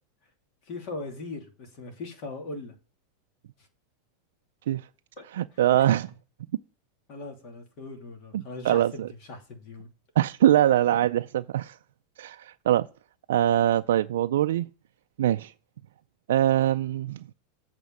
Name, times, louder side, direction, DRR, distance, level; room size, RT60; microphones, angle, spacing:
voice 1, 0.7-2.7 5.2-5.3 5.8-5.9 7.1-9.0 9.3-9.9, left 3 dB, 45° left, 2.9 m, -39 dB
voice 2, 5.3-6.1 8.3-9.1 10.2-11.8 12.2-12.9 13.3-14.7 15.2-15.5 16.3-17.2, right 12 dB, 85° right, 0.4 m, -23 dB
8.2 x 4.4 x 7.1 m
supercardioid pair, 140°, 0 cm